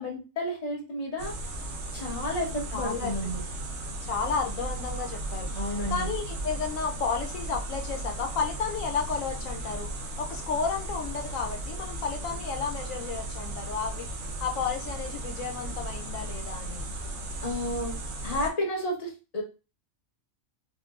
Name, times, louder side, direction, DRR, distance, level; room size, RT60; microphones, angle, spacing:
voice 1, 0.0-1.3 1.9-3.4 5.5-6.1 17.4-17.9 18.2-19.4, left 1 dB, 30° left, -1 dB, 1.0 m, -31 dB
sound 1, 1.2-18.5, right 2 dB, 80° right, 1.1 m, -36 dB
voice 2, 2.7-3.1 4.0-14.1 14.4-16.9, left 5 dB, 80° left, 4 dB, 1.0 m, -32 dB
4.3 x 2.1 x 2.3 m, 0.31 s
omnidirectional pair, 1.4 m